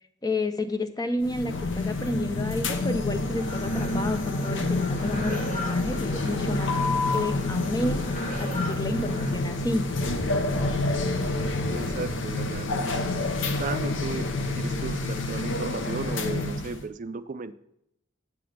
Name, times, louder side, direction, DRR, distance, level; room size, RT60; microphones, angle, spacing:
voice 1, 0.2-6.7 7.1-9.9, left 2 dB, 20° left, 9 dB, 0.5 m, -31 dB
sound 1, 1.2-16.8, left 2 dB, 65° left, 0.8 m, -28 dB
sound 2, 3.3-9.3, left 1 dB, 40° left, 1.4 m, -40 dB
voice 2, 11.7-13.0 13.6-14.3 14.6-17.5, right 4 dB, 40° right, 12 dB, 0.4 m, -35 dB
8.5 x 6.0 x 5.1 m, 0.78 s
head